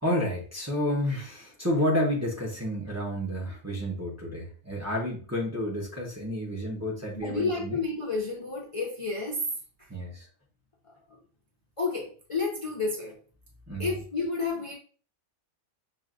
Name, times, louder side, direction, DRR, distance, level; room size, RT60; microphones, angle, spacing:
voice 1, 0.0-7.8 9.9-10.3 13.7-13.9, equal, 15° right, -3 dB, 0.7 m, -30 dB
voice 2, 7.2-9.4 9.8-9.9 10.8-11.0 11.8-13.2 13.8-14.7, left 4 dB, 40° left, -2 dB, 0.5 m, -31 dB
5.8 x 2.5 x 2.5 m, 0.41 s
omnidirectional pair, 1.5 m